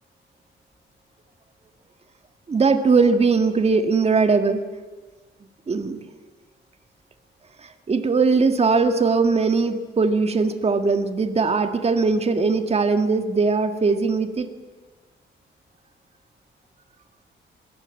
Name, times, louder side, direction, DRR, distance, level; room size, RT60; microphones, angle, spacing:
voice 1, 2.5-4.6 5.7-6.0 7.6-14.5, right 4 dB, 30° right, 8 dB, 1.9 m, -20 dB
25.0 x 22.5 x 9.1 m, 1.3 s
wide cardioid pair, 170°, 21 cm